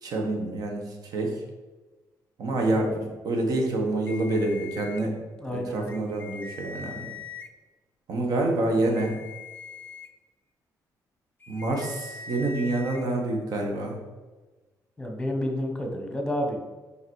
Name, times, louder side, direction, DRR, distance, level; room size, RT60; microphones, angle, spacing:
voice 1, 0.0-1.4 2.4-5.2 5.5-7.1 8.1-9.1 11.5-14.0, right 2 dB, 65° right, 2 dB, 1.4 m, -27 dB
sound 1, 4.1-5.0 5.8-7.5 8.8-10.1 11.4-13.0, left 5 dB, 25° left, 0.5 m, -42 dB
voice 2, 5.4-5.8 15.0-16.6, equal, 10° left, 2 dB, 1.1 m, -29 dB
5.7 x 4.9 x 4.7 m, 1.2 s
cardioid pair, 150°, 7 cm